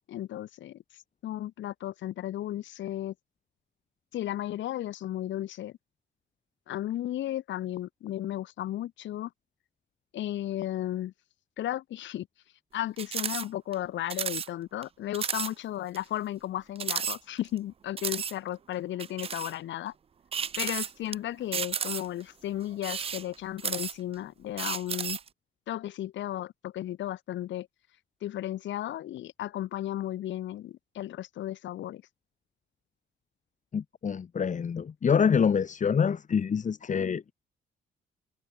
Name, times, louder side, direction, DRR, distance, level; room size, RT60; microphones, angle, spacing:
voice 1, 0.1-0.8 1.2-3.1 4.1-5.7 6.7-9.3 10.1-11.1 11.6-12.3 12.7-19.9 20.6-25.2 25.7-27.7 28.2-32.0, left 13 dB, 70° left, 0.8 m, -34 dB
sound 1, 13.0-13.5 13.7-13.8 14.1-14.5 14.8-14.9 15.1-15.5 15.9-16.0 16.8-17.6 18.0-18.3 19.0-19.5 20.3-21.1 21.5-22.2 22.7-24.1 24.6-25.3, right 7 dB, 30° right, 0.4 m, -33 dB
voice 2, 33.7-37.3, left 6 dB, 40° left, 1.2 m, -26 dB
cardioid pair, 90°, 20 cm